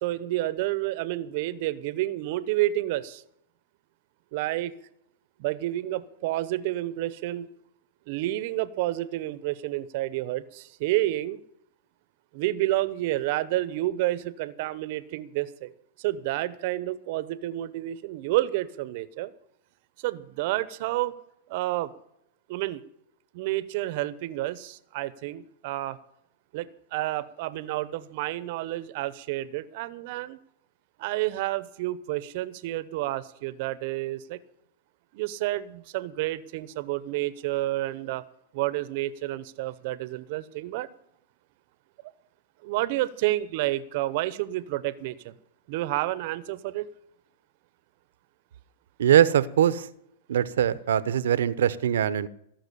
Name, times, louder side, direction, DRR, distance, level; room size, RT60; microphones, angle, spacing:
voice 1, 0.0-3.2 4.3-4.7 5.4-7.5 8.1-11.4 12.3-15.7 16.0-19.3 20.0-21.1 21.5-21.9 22.5-22.8 23.3-26.0 26.5-30.4 31.0-34.4 35.1-38.2 38.5-40.9 42.6-45.3 45.7-46.9, right 16 dB, 55° right, 16 dB, 0.9 m, -30 dB
voice 2, 49.0-49.9 50.3-52.3, right 10 dB, 85° right, 16 dB, 0.9 m, -22 dB
18.0 x 6.1 x 8.5 m, 0.75 s
hypercardioid pair, 135°, 0 cm